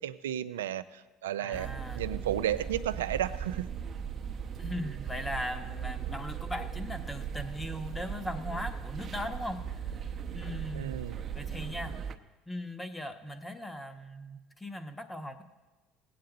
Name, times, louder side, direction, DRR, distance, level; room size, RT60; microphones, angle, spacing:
voice 1, 0.0-3.7 10.7-11.2, right 11 dB, 90° right, 13 dB, 0.4 m, -33 dB
voice 2, 1.4-2.3 4.6-10.0 10.3-11.0 11.3-12.0 12.5-15.4, left 1 dB, 10° left, 7 dB, 1.1 m, -39 dB
sound 1, 1.5-12.1, right 7 dB, 40° right, 0.7 m, -38 dB
18.0 x 8.7 x 3.9 m, 1.2 s
hypercardioid pair, 75°, 0 cm